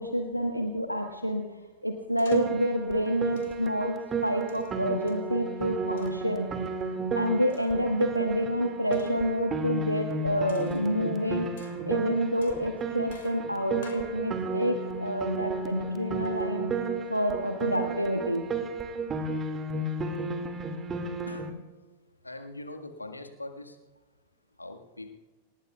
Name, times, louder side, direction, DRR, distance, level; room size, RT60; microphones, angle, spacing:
voice 1, 0.0-1.5 1.8-4.0 4.2-6.5 7.1-16.7 17.1-18.5, equal, 90° right, 4 dB, 1.2 m, -28 dB
sound 1, 2.2-2.7 3.4-3.8 4.5-5.4 6.0-6.3 7.5-8.0 8.9-9.3 10.5-11.2 11.6-12.0 12.4-14.2, left 7 dB, 60° left, 3.2 m, -52 dB
Piano, 2.3-21.5, right 4 dB, 25° right, 2.1 m, -33 dB
voice 2, 22.2-23.8 24.6-25.1, left 2 dB, 85° left, 5 dB, 1.6 m, -42 dB
27.5 x 19.5 x 2.3 m, 1.3 s
figure-of-eight pair, 90°, 0 cm